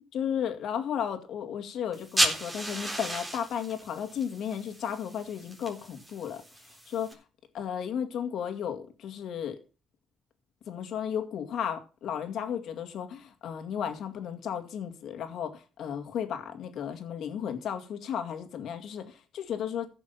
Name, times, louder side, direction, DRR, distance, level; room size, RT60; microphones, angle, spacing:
voice 1, 0.1-6.4 6.9-7.1 7.5-9.6 10.7-19.9, left 8 dB, 75° left, 2.1 m, -34 dB
sound 1, 1.9-7.1, right 1 dB, 15° right, 3.7 m, -34 dB
15.0 x 6.2 x 5.8 m
cardioid pair, 90°, 0 cm